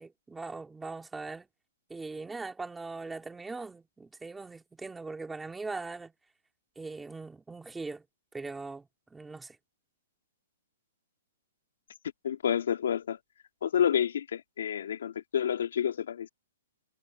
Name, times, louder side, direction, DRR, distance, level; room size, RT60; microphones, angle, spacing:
voice 1, 0.0-1.5 1.9-6.1 6.8-8.0 8.3-9.6, right 3 dB, 5° right, 2.4 m, -40 dB
voice 2, 12.2-13.2 13.6-16.3, left 9 dB, 70° left, 2.8 m, -29 dB
hypercardioid pair, 170°, 0 cm